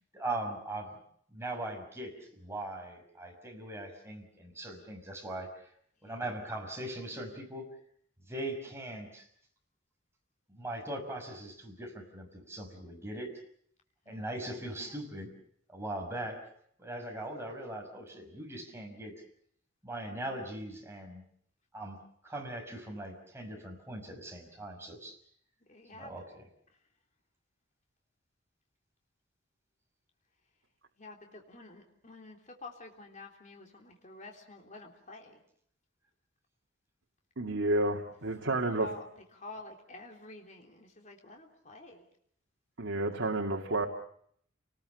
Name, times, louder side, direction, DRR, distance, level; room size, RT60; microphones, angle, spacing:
voice 1, 0.1-1.0 1.3-5.5 6.0-7.7 8.3-9.3 10.5-13.3 14.1-15.3 15.7-16.4 16.8-19.1 19.8-21.2 21.7-25.2 25.9-26.2, right 1 dB, 15° right, 1 dB, 5.9 m, -40 dB
voice 2, 6.0-6.3 14.0-15.0 25.6-26.2 26.7-26.8 31.0-35.4 38.1-38.2 38.8-39.0 39.3-42.0, left 2 dB, 40° left, 1 dB, 3.4 m, -49 dB
voice 3, 37.4-38.9 42.8-43.9, right 2 dB, 75° right, 1 dB, 2.3 m, -30 dB
30.0 x 19.5 x 6.9 m, 0.65 s
head